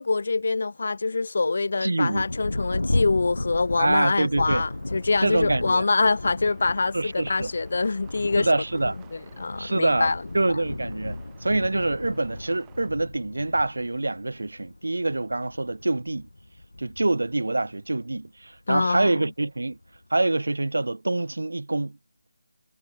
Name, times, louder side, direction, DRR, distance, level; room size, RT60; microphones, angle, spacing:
voice 1, 0.0-8.5 9.4-10.2 18.7-19.1, left 3 dB, 50° left, 1.0 m, -25 dB
voice 2, 1.8-2.3 3.8-4.6 5.2-5.9 6.9-7.5 8.4-9.0 9.6-16.3 16.8-19.8 20.1-22.0, right 2 dB, 65° right, 0.5 m, -25 dB
Thunder, 2.1-18.2 18.9-19.0 19.6-20.0, left 2 dB, 70° left, 2.2 m, -35 dB
sound 1, 3.4-12.9, right 23 dB, 15° right, 1.9 m, -56 dB
figure-of-eight pair, 155°, 0 cm